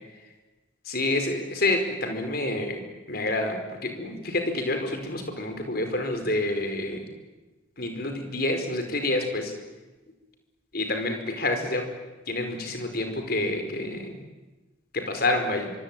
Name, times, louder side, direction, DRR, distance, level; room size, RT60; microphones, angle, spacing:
voice 1, 0.8-2.8 3.1-7.0 7.8-9.5 10.7-11.9 12.3-14.2 14.9-15.7, left 2 dB, 50° left, 6 dB, 4.9 m, -28 dB
24.5 x 24.5 x 9.1 m, 1.1 s
head